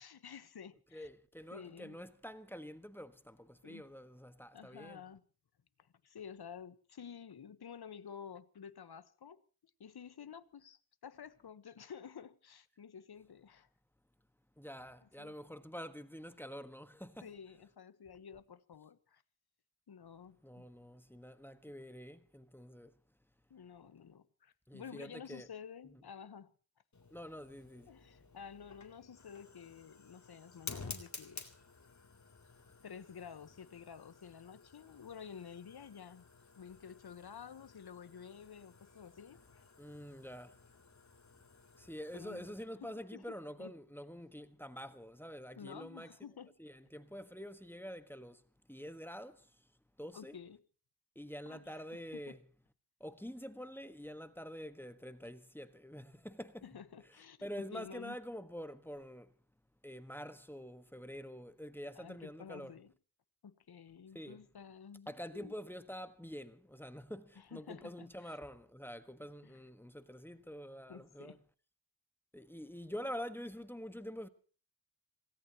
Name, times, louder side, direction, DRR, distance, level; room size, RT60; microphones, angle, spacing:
voice 1, 0.0-1.1 1.5-2.0 3.6-3.9 4.5-5.3 5.8-9.4 9.8-13.7 15.0-15.3 17.2-19.2 19.9-20.7 23.5-26.5 27.9-31.4 32.8-36.3 36.6-39.7 42.1-42.5 42.8-43.7 45.6-46.5 50.1-50.6 51.5-51.9 52.1-52.4 56.6-57.4 57.7-58.2 62.0-62.9 63.4-65.5 67.4-68.4 69.4-69.6 70.9-71.4, left 7 dB, 80° left, 1.3 m, -51 dB
voice 2, 0.9-5.0 14.6-17.3 20.4-22.9 24.7-25.5 27.1-27.9 39.8-40.6 41.8-46.1 46.6-48.4 48.7-49.5 50.0-50.4 51.1-52.4 53.0-56.6 57.4-59.3 59.8-62.7 64.1-64.4 65.1-71.3 72.3-74.3, equal, 5° left, 1.5 m, -47 dB
Fire, 26.9-42.6, left 4 dB, 50° left, 3.4 m, -53 dB
26.5 x 18.5 x 3.0 m
wide cardioid pair, 90°, 38 cm